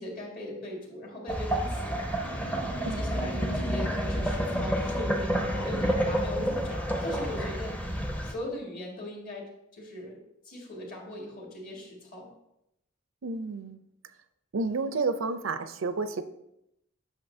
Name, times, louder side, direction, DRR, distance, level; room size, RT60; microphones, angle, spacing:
voice 1, 0.0-2.0 2.6-9.4 9.7-10.2 10.4-12.3, left 1 dB, 45° left, -2 dB, 2.0 m, -39 dB
sound 1, 1.3-8.3, equal, 10° left, 0.6 m, -29 dB
voice 2, 13.2-13.8 14.5-16.2, right 3 dB, 80° right, 11 dB, 0.5 m, -30 dB
8.7 x 6.2 x 2.7 m, 0.83 s
head